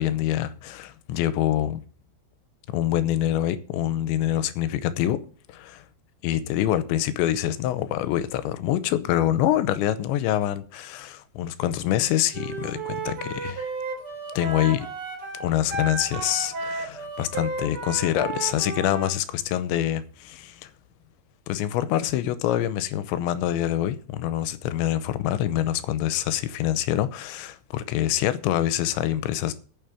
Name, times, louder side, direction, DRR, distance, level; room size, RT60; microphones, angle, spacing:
voice 1, 0.0-1.8 2.7-5.2 5.5-5.8 6.2-13.7 14.4-14.9 15.4-20.7 21.5-29.5, left 12 dB, 85° left, 3.0 m, -25 dB
Wind instrument woodwind instrument, 12.3-19.1, right 3 dB, 35° right, 3.0 m, -33 dB
9.4 x 7.3 x 8.2 m
omnidirectional pair, 5.3 m